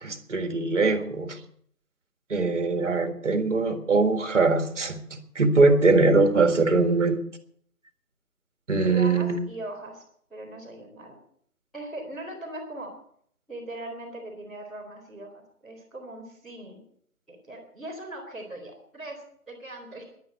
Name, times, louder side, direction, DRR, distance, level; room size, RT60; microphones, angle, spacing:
voice 1, 0.0-1.4 2.3-7.2 8.7-9.4, right 3 dB, 50° right, 8 dB, 1.9 m, -22 dB
voice 2, 8.8-10.0 10.3-11.2 11.7-12.9 13.5-16.8 17.3-20.1, right 1 dB, ahead, -15 dB, 1.3 m, -40 dB
11.0 x 11.0 x 7.8 m, 0.64 s
figure-of-eight pair, 155°, 46 cm